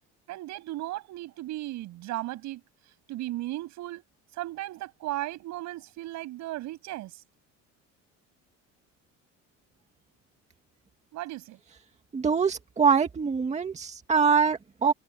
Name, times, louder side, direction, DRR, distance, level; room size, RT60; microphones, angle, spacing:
voice 1, 0.3-2.6 3.1-4.0 4.4-7.1 11.1-11.6, right 16 dB, 70° right, 7.7 m, -35 dB
voice 2, 12.1-14.9, right 6 dB, 20° right, 2.0 m, -24 dB
cardioid pair, 145°, 30 cm